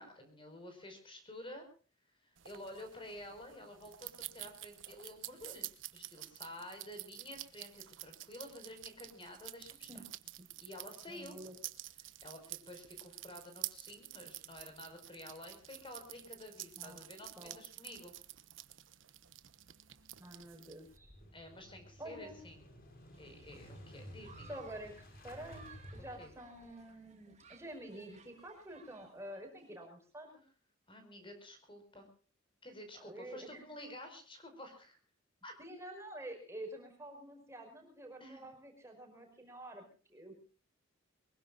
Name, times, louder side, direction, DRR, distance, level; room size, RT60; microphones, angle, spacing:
voice 1, 0.0-1.7 2.1-9.9 10.6-11.4 12.0-18.2 21.3-22.6 23.2-24.6 26.2-26.3 30.9-32.1 32.6-35.0 35.4-35.5 38.2-38.5, left 1 dB, 25° left, 6 dB, 5.3 m, -51 dB
sound 1, 2.4-21.0, right 15 dB, 70° right, 1.1 m, -49 dB
voice 2, 11.1-11.6 16.8-17.0 17.4-17.6 20.2-21.1 22.0-22.4 24.4-30.4 32.9-33.7 35.6-40.4, right 1 dB, 15° right, 3 dB, 5.3 m, -49 dB
Motorcycle / Engine starting, 20.8-26.7, equal, 45° left, 5.9 m, -54 dB
Human group actions, 23.1-29.7, right 5 dB, 35° right, 2.6 m, -60 dB
24.0 x 21.5 x 2.5 m, 0.39 s
head